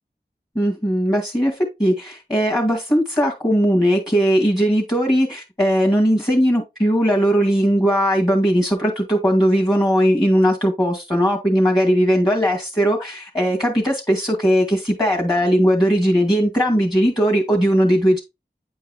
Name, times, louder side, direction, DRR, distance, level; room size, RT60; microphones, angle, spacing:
voice 1, 0.6-1.5 1.8-18.2, equal, 20° left, 2.0 m, -18 dB
9.3 x 4.6 x 2.3 m
wide cardioid pair, 40°, 18 cm